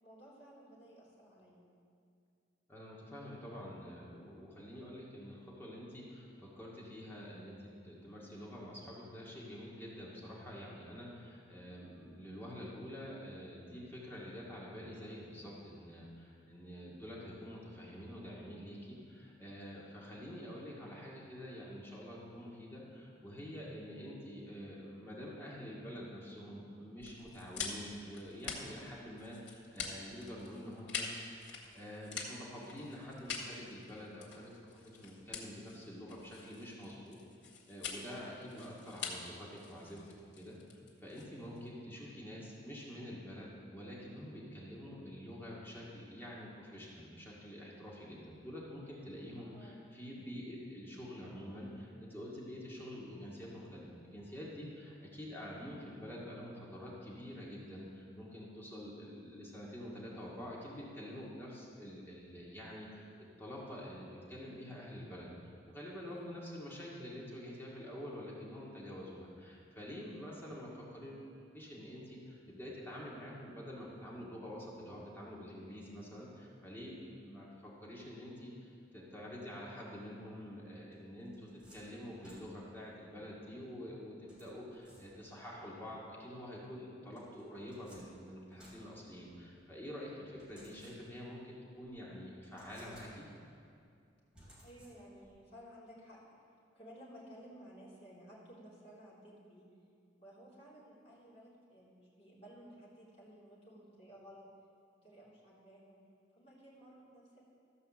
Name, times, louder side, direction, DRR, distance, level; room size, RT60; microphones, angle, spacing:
voice 1, 0.0-1.6 49.5-49.8 66.1-66.4 94.6-96.2 96.7-99.7 100.2-104.5 105.0-106.0 106.3-107.4, equal, 35° left, -8 dB, 3.3 m, -56 dB
voice 2, 2.7-34.5 34.8-37.2 37.7-63.1 63.4-71.3 71.5-93.3, equal, 15° left, -5 dB, 2.0 m, -47 dB
sound 1, 27.0-41.7, left 5 dB, 80° left, 1.8 m, -45 dB
sound 2, 80.9-82.9 84.3-85.5 87.1-89.6 90.4-91.4 91.8-91.9 92.4-93.5 94.3-95.3, equal, 5° right, 2.8 m, -61 dB
14.0 x 5.5 x 7.3 m, 2.3 s
head